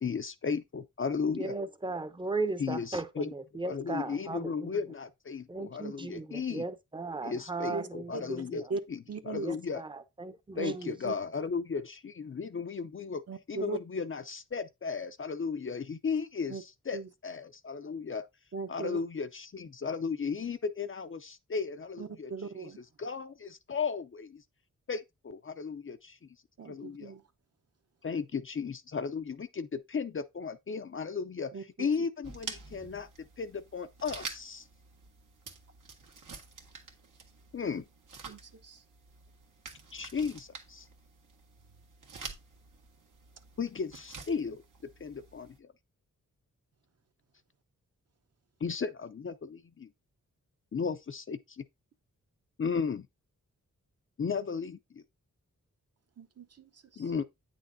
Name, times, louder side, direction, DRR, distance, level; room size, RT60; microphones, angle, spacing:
voice 1, 0.0-1.5 2.6-3.3 3.6-6.6 7.2-8.6 8.9-9.8 10.6-13.2 13.5-18.2 18.7-22.7 23.0-24.4 24.9-26.2 26.6-27.1 28.0-31.5 31.8-34.7 37.5-37.9 39.9-40.9 43.6-44.6 45.0-45.7 48.6-49.9 50.7-51.6 52.6-53.1 54.2-55.0 57.0-57.2, left 5 dB, 40° left, 0.5 m, -35 dB
voice 2, 1.4-4.7 5.5-8.7 9.4-10.9, right 3 dB, 15° right, 0.7 m, -37 dB
voice 3, 9.1-9.5 10.6-10.7 11.0-11.1 13.3-13.8 16.5-16.6 16.9-17.1 18.5-19.0 22.0-22.8 26.6-27.2 31.5-32.1 38.3-38.8 56.2-57.0, right 4 dB, 50° right, 0.9 m, -39 dB
sound 1, 32.2-45.6, right 4 dB, 80° right, 1.6 m, -48 dB
9.0 x 6.1 x 2.6 m
wide cardioid pair, 140°, 31 cm